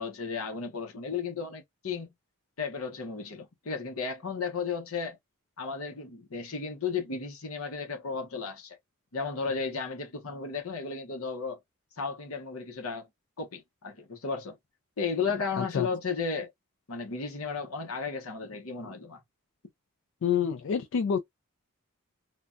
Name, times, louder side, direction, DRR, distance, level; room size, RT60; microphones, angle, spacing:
voice 1, 0.0-2.1 2.6-5.2 5.6-8.8 9.1-11.6 12.0-13.1 13.4-14.6 15.0-16.5 16.9-19.2, left 5 dB, 80° left, 0.8 m, -34 dB
voice 2, 15.6-15.9 20.2-21.2, left 7 dB, 60° left, 0.3 m, -27 dB
3.2 x 2.2 x 2.5 m
head